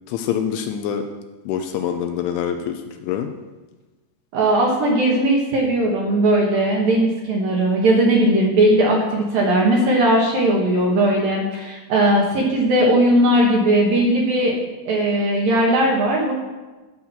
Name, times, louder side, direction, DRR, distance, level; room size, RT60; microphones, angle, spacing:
voice 1, 0.1-1.1 1.5-3.3, left 8 dB, 80° left, 6 dB, 3.0 m, -25 dB
voice 2, 4.3-14.6 14.9-16.3, right 1 dB, 60° right, -2 dB, 2.6 m, -18 dB
13.5 x 6.2 x 7.1 m, 1.2 s
omnidirectional pair, 5.9 m